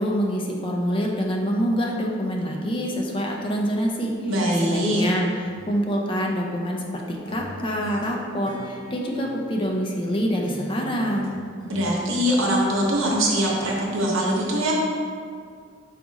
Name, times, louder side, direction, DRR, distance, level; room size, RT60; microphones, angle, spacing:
voice 1, 0.0-4.1 4.6-5.3 5.7-11.4, equal, 25° left, 0 dB, 0.4 m, -26 dB
voice 2, 4.3-5.0 11.7-14.7, equal, 80° right, -3 dB, 0.9 m, -22 dB
sound 1, 5.4-6.9 7.2-10.1 10.4-11.8, equal, 75° left, 1.1 m, -42 dB
4.8 x 2.4 x 3.9 m, 2.2 s
head